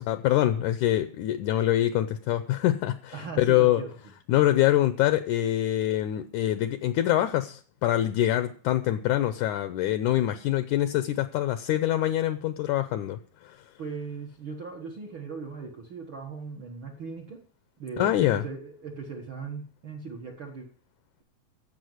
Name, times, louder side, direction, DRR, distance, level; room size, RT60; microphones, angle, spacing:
voice 1, 0.0-3.8 4.3-13.6 18.0-18.4, left 13 dB, 75° left, 10 dB, 1.8 m, -25 dB
voice 2, 3.1-3.9 13.8-17.4 17.8-20.7, right 5 dB, 60° right, 1 dB, 1.3 m, -38 dB
15.0 x 5.3 x 9.4 m, 0.42 s
omnidirectional pair, 4.3 m